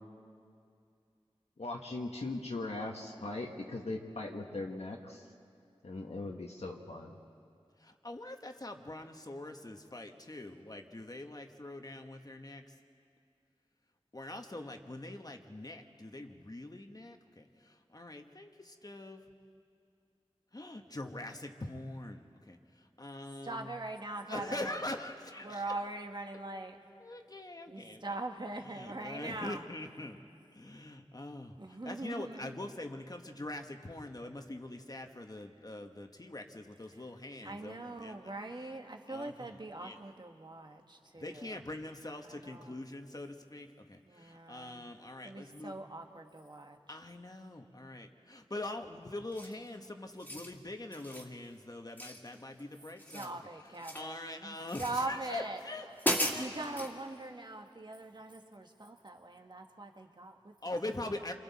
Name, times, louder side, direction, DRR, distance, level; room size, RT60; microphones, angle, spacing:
voice 1, 1.6-5.3 5.8-7.1, left 2 dB, 80° left, 0 dB, 1.4 m, -39 dB
voice 2, 8.0-12.7 14.1-19.2 20.5-23.7 24.3-25.7 27.0-28.2 28.6-30.2 30.5-38.7 39.1-40.0 41.1-45.8 46.9-56.5 60.6-61.3, left 1 dB, 35° left, 5 dB, 1.3 m, -43 dB
voice 3, 23.4-24.8 25.4-26.8 27.7-29.6 31.6-32.6 37.4-41.6 42.2-42.8 44.0-44.8 45.2-46.8 53.1-55.6 56.3-60.5, right 2 dB, 45° right, 4 dB, 1.5 m, -42 dB
sound 1, 49.3-49.7 50.1-50.5 50.9-51.3 52.0-52.6 52.9-54.1 54.7-55.1 55.6-55.7 56.0-56.9, equal, 15° left, 2.2 m, -36 dB
28.5 x 23.5 x 4.2 m, 2.4 s
wide cardioid pair, 60°, 11 cm